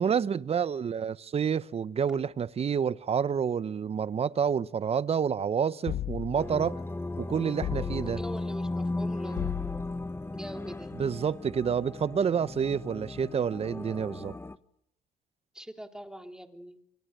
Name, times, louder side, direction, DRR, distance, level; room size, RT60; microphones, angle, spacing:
voice 1, 0.0-6.8 7.2-8.2 11.0-14.4, right 7 dB, 40° right, 1.0 m, -28 dB
sound 1, 5.9-6.6 7.6-8.4 9.4-10.1, left 11 dB, 60° left, 1.2 m, -35 dB
sound 2, 6.4-14.6, left 2 dB, 15° left, 1.2 m, -36 dB
voice 2, 8.0-10.0 10.3-11.0 15.5-16.8, equal, 5° right, 3.4 m, -43 dB
28.0 x 23.5 x 6.8 m
supercardioid pair, 70°, 16 cm